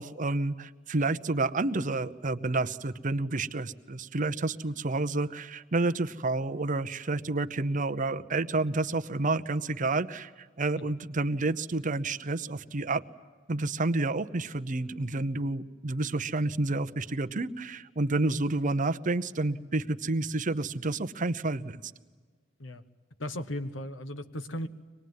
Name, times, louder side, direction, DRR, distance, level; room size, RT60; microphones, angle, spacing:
voice 1, 0.0-13.0 13.5-21.9, right 2 dB, 45° right, 10 dB, 0.8 m, -29 dB
voice 2, 23.2-24.7, left 1 dB, 85° left, 11 dB, 1.2 m, -36 dB
25.0 x 20.0 x 9.5 m, 1.5 s
head